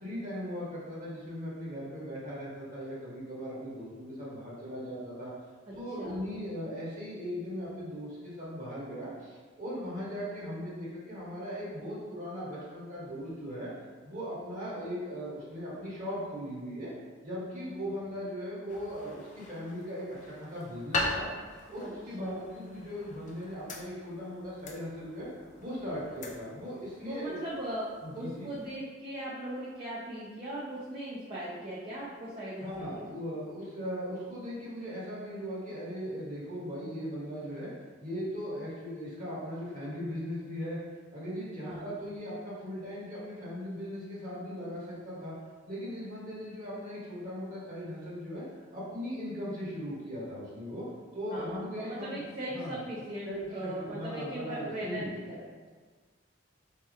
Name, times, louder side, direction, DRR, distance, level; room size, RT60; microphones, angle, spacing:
voice 1, 0.0-5.3 5.7-13.7 14.0-16.9 17.2-21.2 21.7-25.3 25.6-27.4 28.0-28.5 32.6-37.7 38.0-40.8 41.1-45.3 45.7-48.4 48.7-50.8 51.1-52.2 52.5-52.8 53.2-55.1, equal, 40° right, -7 dB, 1.3 m, -38 dB
voice 2, 5.7-6.2 21.8-21.9 22.2-22.4 27.1-27.9 28.2-33.2 41.6-41.9 51.3-55.5, right 1 dB, 25° right, -8 dB, 0.6 m, -39 dB
sound 1, 18.7-28.8, left 2 dB, 40° left, 0.4 m, -41 dB
4.3 x 2.8 x 3.6 m, 1.5 s
head